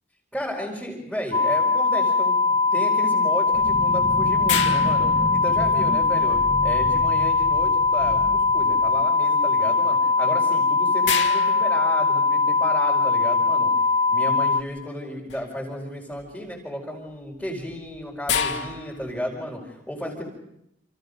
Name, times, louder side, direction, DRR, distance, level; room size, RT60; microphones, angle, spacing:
voice 1, 0.3-13.7 14.1-20.2, equal, ahead, -5 dB, 4.9 m, -33 dB
sound 1, 1.3-14.6, left 4 dB, 30° left, 1.4 m, -21 dB
sound 2, 3.5-9.5, equal, 20° right, 1.3 m, -33 dB
sound 3, 4.5-6.0 10.2-10.3 11.0-12.6 15.3-15.6 16.1-16.5 17.4-19.3, left 7 dB, 70° left, 2.3 m, -30 dB
29.5 x 28.5 x 5.3 m, 0.81 s
head